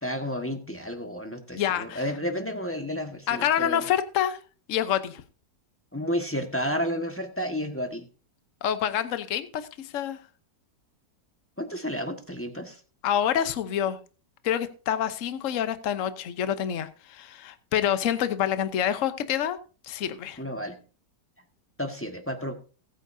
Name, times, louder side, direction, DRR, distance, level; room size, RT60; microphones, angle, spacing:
voice 1, 0.0-3.8 5.9-8.0 11.6-12.8 20.4-20.8 21.8-22.5, equal, 10° left, 5 dB, 1.3 m, -31 dB
voice 2, 1.5-2.0 3.3-4.4 4.7-5.2 8.6-10.2 13.0-14.0 14.4-19.6 19.8-20.4, left 10 dB, 55° left, 11 dB, 1.1 m, -27 dB
20.0 x 9.2 x 2.7 m, 0.36 s
omnidirectional pair, 1.9 m